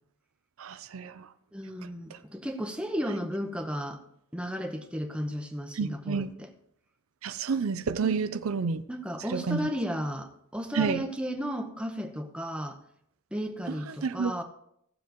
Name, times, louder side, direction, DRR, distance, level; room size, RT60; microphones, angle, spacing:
voice 1, 0.6-1.3 2.1-2.2 5.8-6.3 7.2-8.8 9.3-9.6 10.7-11.0 13.7-14.3, right 5 dB, 85° right, 0.5 m, -30 dB
voice 2, 1.5-4.0 4.3-6.5 8.0-8.2 8.9-12.8 13.3-14.4, equal, 5° right, 0.9 m, -34 dB
16.5 x 7.4 x 3.0 m
head